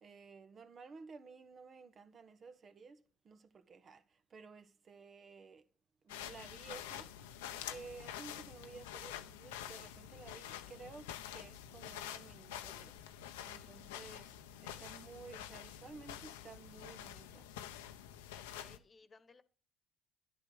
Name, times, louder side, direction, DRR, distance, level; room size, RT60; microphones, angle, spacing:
voice 1, 0.0-4.0 4.3-5.6 6.0-7.1 7.5-12.9 13.4-14.4 14.6-17.5, right 4 dB, 45° right, 1.4 m, -54 dB
sound 1, 6.1-18.8, left 11 dB, 90° left, 0.8 m, -48 dB
voice 2, 18.5-19.4, left 4 dB, 30° left, 1.3 m, -61 dB
11.0 x 10.5 x 5.0 m
hypercardioid pair, 65°, 0 cm